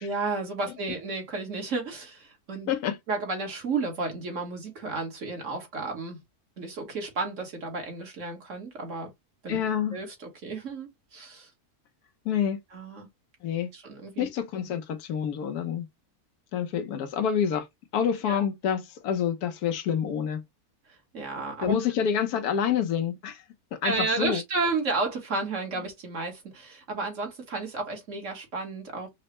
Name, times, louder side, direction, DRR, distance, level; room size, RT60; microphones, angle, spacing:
voice 1, 0.0-2.7 3.1-6.2 6.6-9.1 9.4-9.6 9.9-11.5 12.7-13.1 13.7-14.3 18.2-18.4 20.9-21.7 23.8-29.1, right 3 dB, 55° right, 1.7 m, -32 dB
voice 2, 9.5-10.0 12.2-12.6 13.4-13.7 14.2-15.9 16.5-17.7 17.9-20.4 21.6-23.4 23.8-24.4, left 8 dB, 85° left, 1.3 m, -27 dB
5.4 x 2.1 x 2.9 m
omnidirectional pair, 1.6 m